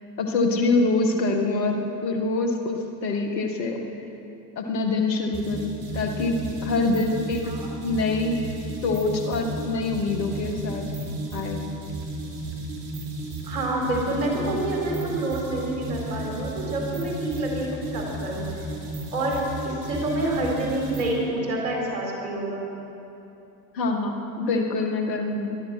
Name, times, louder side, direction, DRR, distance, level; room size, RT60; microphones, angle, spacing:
voice 1, 0.2-3.9 4.6-7.5 7.8-8.5 8.8-10.9 11.3-11.6 23.7-25.6, left 3 dB, 80° left, 4 dB, 2.0 m, -25 dB
sound 1, 5.3-21.2, right 1 dB, 55° right, 4.9 m, -34 dB
voice 2, 13.4-18.5 19.1-22.6, right 1 dB, 80° right, -1 dB, 4.2 m, -27 dB
19.0 x 12.5 x 6.0 m, 2.9 s
hypercardioid pair, 70°, 50 cm